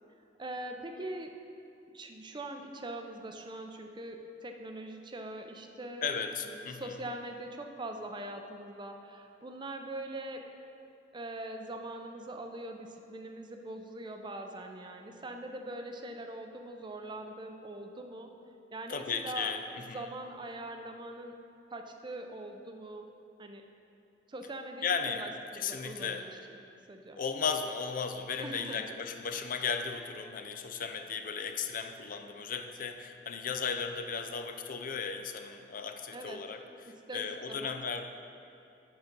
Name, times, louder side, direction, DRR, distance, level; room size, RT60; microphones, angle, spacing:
voice 1, 0.4-1.3 1.9-6.1 6.4-10.4 11.1-18.3 18.7-21.4 21.7-23.1 23.4-23.6 24.3-26.3 26.9-27.2 28.4-28.8 36.1-36.4 36.9-37.8, right 1 dB, 25° right, 4 dB, 0.5 m, -42 dB
voice 2, 6.0-7.0 18.9-20.1 24.8-26.2 27.2-38.0, left 6 dB, 50° left, 6 dB, 0.5 m, -36 dB
8.1 x 5.8 x 5.2 m, 2.6 s
head